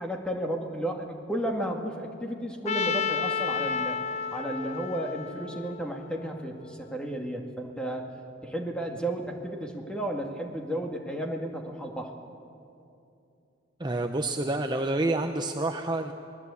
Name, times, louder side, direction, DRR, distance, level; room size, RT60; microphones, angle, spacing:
voice 1, 0.0-4.0 4.3-8.1 8.4-12.1, right 1 dB, 5° left, 2 dB, 2.1 m, -33 dB
Trumpet, 2.7-6.7, left 5 dB, 35° left, 0.6 m, -32 dB
voice 2, 13.8-16.1, right 2 dB, 20° right, 5 dB, 0.8 m, -28 dB
29.5 x 20.0 x 8.4 m, 2.7 s
head